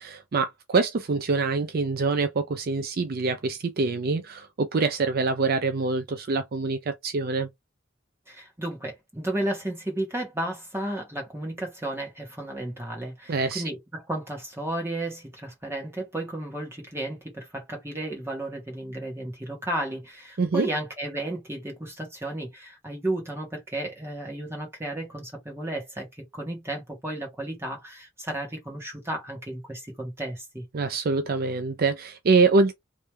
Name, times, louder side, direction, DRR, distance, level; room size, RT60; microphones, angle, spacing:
voice 1, 0.0-7.5 13.3-13.6 20.4-20.7 30.7-32.7, right 4 dB, 50° right, 0.5 m, -25 dB
voice 2, 8.3-26.1 26.3-30.6, right 1 dB, 15° right, 1.6 m, -33 dB
3.2 x 3.1 x 3.2 m
head